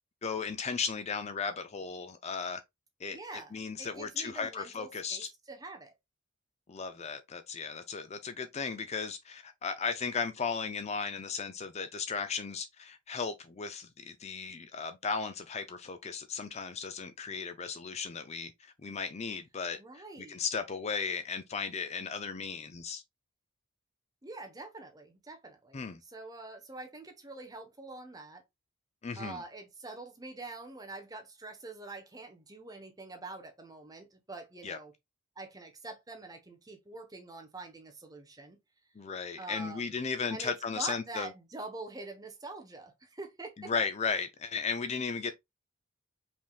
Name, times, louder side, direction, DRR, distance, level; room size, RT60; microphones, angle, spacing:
voice 1, 0.2-2.6 3.0-5.3 6.7-23.0 25.7-26.0 29.0-29.4 34.6-34.8 39.0-41.3 43.6-45.3, left 5 dB, 30° left, 0.4 m, -36 dB
voice 2, 3.1-5.9 19.8-20.4 24.2-28.4 29.2-34.9 35.4-38.6 39.4-39.9 40.3-43.7, right 2 dB, 20° right, 1.0 m, -45 dB
5.2 x 3.6 x 2.3 m
head